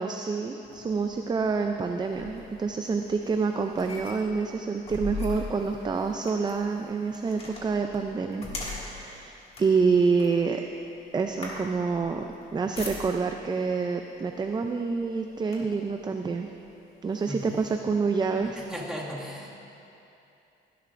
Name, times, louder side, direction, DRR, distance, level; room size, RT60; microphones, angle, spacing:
voice 1, 0.0-8.5 8.8-10.6 11.1-12.2 12.5-16.5 17.0-18.6, right 4 dB, 25° right, 5 dB, 0.5 m, -27 dB
sound 1, 0.6-13.5 14.3-14.5 14.9-15.9 16.6-16.7 17.1-18.8, left 3 dB, 35° left, 2.2 m, -42 dB
voice 2, 18.5-19.5, equal, 5° right, -5 dB, 2.0 m, -36 dB
16.0 x 11.0 x 2.6 m, 2.8 s
cardioid pair, 100°, 18 cm